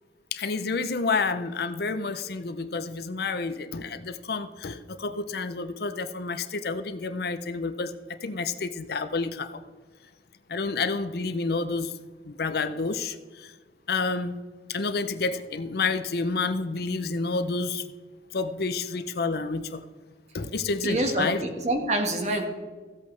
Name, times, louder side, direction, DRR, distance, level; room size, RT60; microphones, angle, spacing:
voice 1, 0.3-9.6 10.5-11.9 12.2-13.5 13.9-14.3 14.7-17.8 18.3-19.9 20.3-21.4, left 4 dB, 60° left, 11 dB, 0.6 m, -29 dB
voice 2, 20.8-22.4, right 1 dB, 40° right, 4 dB, 1.6 m, -26 dB
15.5 x 8.2 x 3.3 m, 1.4 s
head